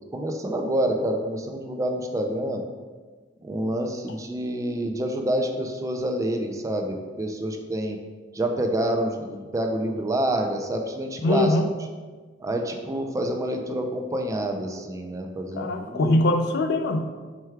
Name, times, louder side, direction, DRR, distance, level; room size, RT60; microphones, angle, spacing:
voice 1, 0.1-2.6 3.4-8.0 8.3-11.6 12.4-16.2, right 1 dB, 15° right, 3 dB, 0.3 m, -27 dB
voice 2, 11.2-11.7 15.6-17.1, left 1 dB, 60° left, 7 dB, 0.4 m, -22 dB
4.7 x 2.3 x 4.4 m, 1.4 s
head